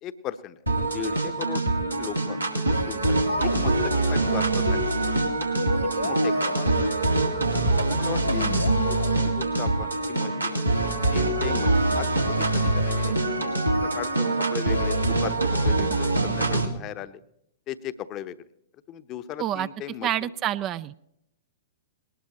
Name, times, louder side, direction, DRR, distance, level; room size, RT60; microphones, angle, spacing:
voice 1, 0.0-1.6 2.0-2.4 2.7-4.8 6.0-6.9 7.9-8.6 9.2-10.6 11.1-11.7 11.9-13.5 14.0-17.2 17.7-18.4 18.9-20.3, left 10 dB, 30° left, 12 dB, 0.9 m, -37 dB
sound 1, 0.7-16.7, right 2 dB, 85° right, 2.2 m, -24 dB
sound 2, 3.3-4.1 5.6-7.5 8.3-9.6, left 2 dB, 80° left, 1.0 m, -33 dB
voice 2, 8.3-8.8 19.4-19.7 20.0-20.9, right 12 dB, 30° right, 14 dB, 0.5 m, -28 dB
20.5 x 19.0 x 3.0 m, 0.78 s
figure-of-eight pair, 105°, 0 cm